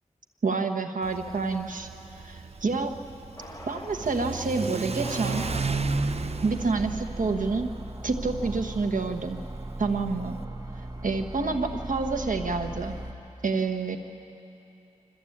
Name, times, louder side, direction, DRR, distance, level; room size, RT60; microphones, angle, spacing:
voice 1, 0.4-1.9 2.2-3.0 3.7-5.5 6.4-7.7 8.0-9.4 9.8-10.4 11.0-12.9 13.4-14.0, right 4 dB, 80° right, 4 dB, 1.3 m, -28 dB
Car / Accelerating revving vroom, 1.0-10.4, right 4 dB, 50° right, 0.6 m, -34 dB
sound 1, 3.4-4.2 4.8-6.0, left 1 dB, 25° left, 2.4 m, -43 dB
sound 2, 5.4-13.1, right 1 dB, 30° right, 1.4 m, -37 dB
25.5 x 14.0 x 8.7 m, 3.0 s
wide cardioid pair, 80°, 13 cm